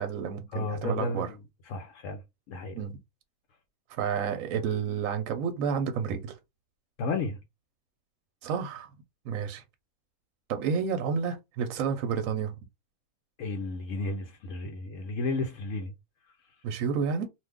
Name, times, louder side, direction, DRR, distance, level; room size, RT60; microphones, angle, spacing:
voice 1, 0.0-1.3 2.7-2.9 4.0-6.4 8.4-8.9 9.3-9.6 10.5-12.5 16.6-17.3, right 6 dB, 70° right, 0.9 m, -30 dB
voice 2, 0.5-1.4 1.7-2.2 2.5-2.8 7.0-7.4 13.4-15.9, left 2 dB, 70° left, 0.9 m, -32 dB
2.5 x 2.3 x 3.4 m
omnidirectional pair, 1.5 m